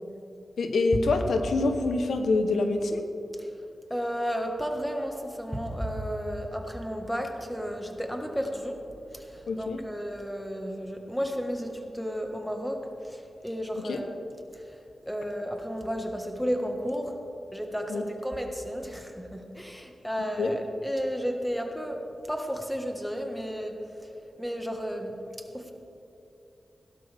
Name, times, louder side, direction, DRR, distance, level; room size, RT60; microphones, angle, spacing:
voice 1, 0.6-3.1 9.5-9.8 13.8-14.0 17.9-18.0 20.4-20.5, left 3 dB, 90° left, 6 dB, 0.9 m, -26 dB
voice 2, 3.9-8.8 9.1-14.2 14.5-14.8 15.0-17.1 17.5-22.0 22.3-24.1 24.4-25.7, equal, ahead, 3 dB, 1.5 m, -33 dB
17.0 x 12.0 x 3.5 m, 2.8 s
cardioid pair, 75°, 0 cm